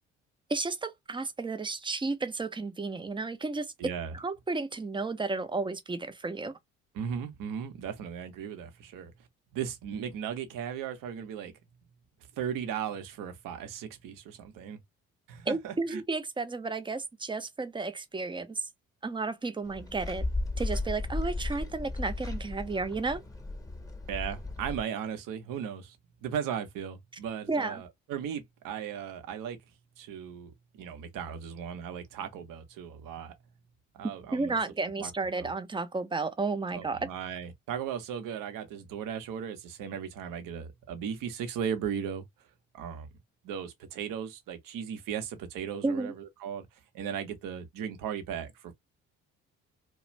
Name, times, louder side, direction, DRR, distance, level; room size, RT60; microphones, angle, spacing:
voice 1, 0.5-3.7 4.1-6.5 15.5-18.7 19.0-20.2 20.6-23.2 27.5-27.8 34.3-37.1 45.8-46.1, right 3 dB, 15° right, 0.5 m, -32 dB
voice 2, 3.8-4.1 6.9-9.1 9.5-11.5 12.4-14.8 15.3-16.0 24.1-29.6 30.0-30.5 30.8-33.3 33.9-34.6 35.0-35.1 35.4-35.5 36.7-42.2 42.7-43.1 43.4-46.7 46.9-48.7, right 8 dB, 60° right, 0.9 m, -37 dB
sound 1, 19.7-24.8, left 2 dB, 10° left, 0.9 m, -35 dB
2.4 x 2.1 x 3.0 m
hypercardioid pair, 50°, 37 cm